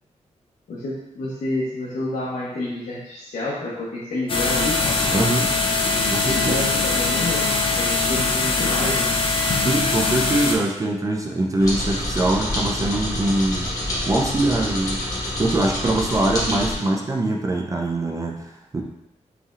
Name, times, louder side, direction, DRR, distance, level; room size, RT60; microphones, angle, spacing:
voice 1, 0.7-4.8 6.3-7.5 7.8-9.1 16.8-16.9, left 2 dB, 85° left, -7 dB, 0.9 m, -29 dB
sound 1, 4.3-10.5, left 3 dB, 45° left, 0.6 m, -22 dB
voice 2, 5.1-5.6 6.1-6.5 9.6-13.7 14.1-15.0 15.4-18.8, right 2 dB, 25° right, 0 dB, 0.4 m, -23 dB
sound 2, 11.6-16.7, left 1 dB, 30° left, 1.2 m, -27 dB
5.3 x 3.4 x 2.4 m, 0.87 s
wide cardioid pair, 140°, 13 cm